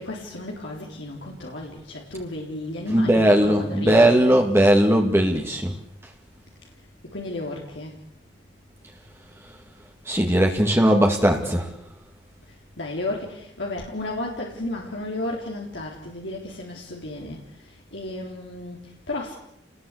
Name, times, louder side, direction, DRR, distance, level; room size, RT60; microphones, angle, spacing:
voice 1, 0.0-4.3 7.0-8.0 12.5-19.3, left 2 dB, 80° left, -1 dB, 3.8 m, -33 dB
voice 2, 2.9-5.8 10.0-11.7, right 1 dB, 15° right, 2 dB, 2.1 m, -18 dB
29.5 x 20.0 x 8.4 m, 0.83 s
head